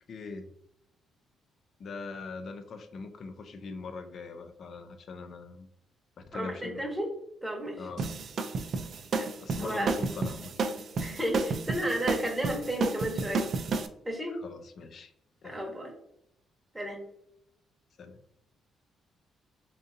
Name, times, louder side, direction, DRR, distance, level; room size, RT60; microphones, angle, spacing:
voice 1, 0.1-0.5 1.8-5.7 6.2-6.9 7.8-8.1 9.4-10.6 14.3-15.1 15.4-15.7 18.0-18.2, left 4 dB, 55° left, 8 dB, 0.4 m, -41 dB
voice 2, 6.3-7.1 7.4-7.8 9.2-9.3 9.6-9.9 11.0-13.4 14.0-14.3 15.4-15.9 16.7-17.0, equal, 10° right, 1 dB, 0.9 m, -32 dB
sound 1, 8.0-13.9, right 4 dB, 55° right, 0.4 m, -31 dB
3.7 x 2.6 x 2.6 m, 0.78 s
cardioid pair, 90°, 0 cm